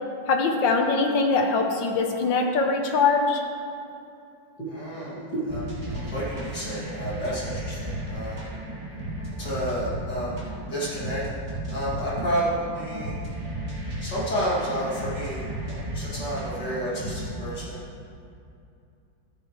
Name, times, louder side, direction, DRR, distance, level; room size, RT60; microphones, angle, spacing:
voice 1, 0.3-3.4, left 4 dB, 75° left, 3 dB, 1.7 m, -22 dB
voice 2, 4.7-8.4 9.4-10.4 10.7-11.2 11.7-13.2 14.0-17.8, equal, 60° left, -8 dB, 3.1 m, -30 dB
sound 1, 5.5-17.5, right 1 dB, 20° right, 2.0 m, -34 dB
13.5 x 10.0 x 3.2 m, 2.6 s
omnidirectional pair, 2.1 m